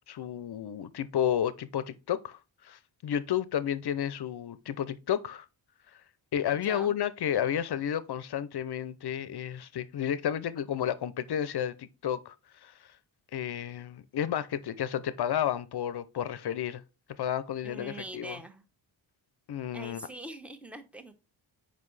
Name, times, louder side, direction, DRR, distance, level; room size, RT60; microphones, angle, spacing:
voice 1, 0.1-5.5 6.3-12.4 12.6-12.7 13.3-16.8 17.2-18.4 19.5-20.1, left 9 dB, 55° left, 0.6 m, -31 dB
voice 2, 6.5-7.0 17.6-18.6 19.7-21.1, right 1 dB, 5° right, 0.7 m, -43 dB
7.3 x 5.2 x 3.2 m
wide cardioid pair, 135°, 48 cm